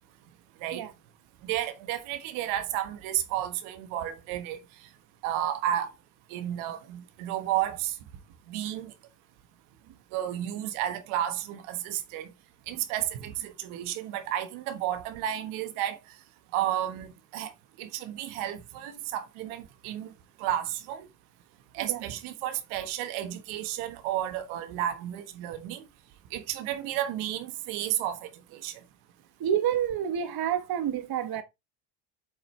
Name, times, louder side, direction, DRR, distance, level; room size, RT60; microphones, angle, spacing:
voice 1, 1.4-4.6 5.2-5.9 6.3-7.9 8.5-8.9 10.1-12.3 12.7-16.0 16.5-17.5 17.8-20.1 20.4-21.1 21.7-25.8 26.3-28.7, right 12 dB, 75° right, 1.4 m, -32 dB
voice 2, 29.4-31.4, right 9 dB, 45° right, 1.1 m, -28 dB
7.8 x 5.0 x 3.2 m
supercardioid pair, 75°, 50 cm